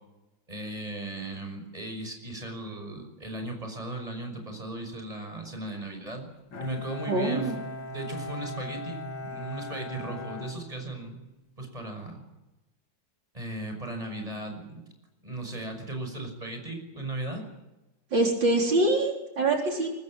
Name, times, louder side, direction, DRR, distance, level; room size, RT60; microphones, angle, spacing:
voice 1, 0.5-6.3 6.6-7.5 7.9-11.2 11.6-12.2 13.3-14.8 15.2-17.5, right 2 dB, 20° right, 4 dB, 6.2 m, -36 dB
Bowed string instrument, 6.5-11.4, left 2 dB, 75° left, 3.0 m, -39 dB
voice 2, 7.1-7.6 18.1-19.9, right 2 dB, 75° right, 1 dB, 4.5 m, -24 dB
24.0 x 20.5 x 9.0 m, 1.0 s
omnidirectional pair, 2.0 m